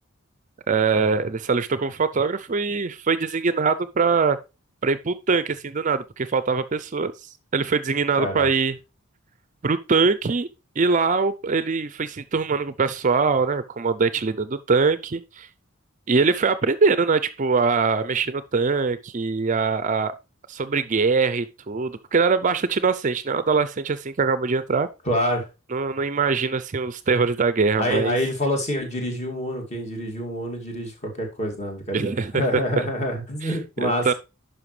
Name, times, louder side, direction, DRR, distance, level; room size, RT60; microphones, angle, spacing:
voice 1, 0.7-4.4 4.8-7.1 7.5-8.8 9.6-10.5 10.8-15.5 16.1-20.1 20.5-24.9 25.7-28.2 31.9-32.8 33.4-34.1, right 4 dB, 35° right, 0.4 m, -22 dB
voice 2, 8.2-8.5 25.1-25.5 27.8-34.1, equal, 30° left, 2.4 m, -27 dB
11.0 x 5.6 x 3.2 m
head